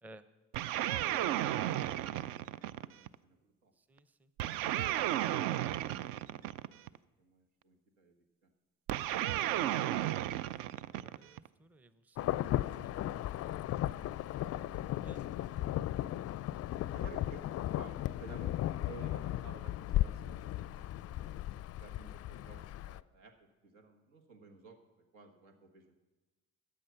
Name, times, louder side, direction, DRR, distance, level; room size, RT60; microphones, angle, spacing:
sound 1, 0.5-3.1 4.4-7.0 8.9-11.5, right 13 dB, 60° right, 0.5 m, -34 dB
voice 1, 1.8-3.7 5.9-6.5 6.7-6.9 7.2-8.1 8.4-8.5 14.3-15.8 16.9-17.4 17.8-21.4 21.8-24.8 25.1-26.0, right 3 dB, 80° right, 4 dB, 1.5 m, -55 dB
voice 2, 3.8-4.3 10.8-12.3 13.0-13.5 15.0-15.3 22.4-22.6, right 1 dB, 5° right, 14 dB, 0.6 m, -58 dB
Insect / Thunder / Rain, 12.2-23.0, left 14 dB, 40° left, 0.4 m, -36 dB
14.0 x 9.1 x 5.7 m, 1.2 s
hypercardioid pair, 50°, 40 cm